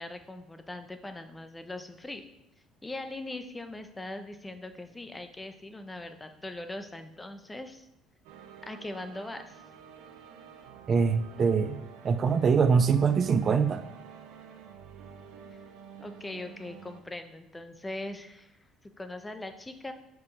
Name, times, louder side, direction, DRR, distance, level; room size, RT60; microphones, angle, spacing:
voice 1, 0.0-2.2 2.8-7.9 8.6-9.6 16.0-18.6 18.8-19.9, left 2 dB, 15° left, 8 dB, 0.8 m, -40 dB
sound 1, 8.2-17.0, right 7 dB, 80° right, 0.7 m, -49 dB
voice 2, 10.9-13.8, right 5 dB, 45° right, 11 dB, 0.4 m, -24 dB
4.9 x 4.7 x 5.4 m, 0.88 s
supercardioid pair, 70°, 0 cm